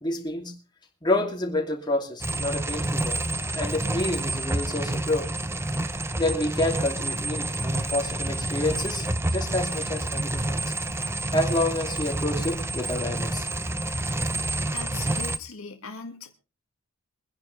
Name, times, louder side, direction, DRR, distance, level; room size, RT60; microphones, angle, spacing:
voice 1, 0.0-0.6 1.0-3.2 3.5-5.3 6.2-10.6 11.3-13.5, left 1 dB, 20° left, 2.7 m, -28 dB
sound 1, 2.2-15.4, right 2 dB, 10° right, 0.7 m, -29 dB
voice 2, 14.7-16.4, left 5 dB, 70° left, 1.8 m, -39 dB
24.0 x 10.5 x 3.2 m
head